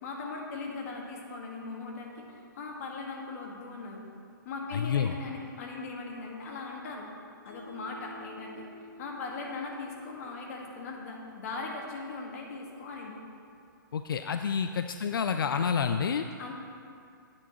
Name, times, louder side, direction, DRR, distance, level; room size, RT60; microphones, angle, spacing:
voice 1, 0.0-4.0 4.5-7.1 7.4-8.6 9.0-13.2 16.4-16.5, left 3 dB, 45° left, 0 dB, 1.7 m, -39 dB
voice 2, 4.7-5.1 13.9-16.2, left 7 dB, 85° left, 8 dB, 0.4 m, -29 dB
Mallet percussion, 7.5-10.7, equal, 30° right, 1.6 m, -51 dB
12.5 x 8.8 x 3.0 m, 2.3 s
hypercardioid pair, 150°, 11 cm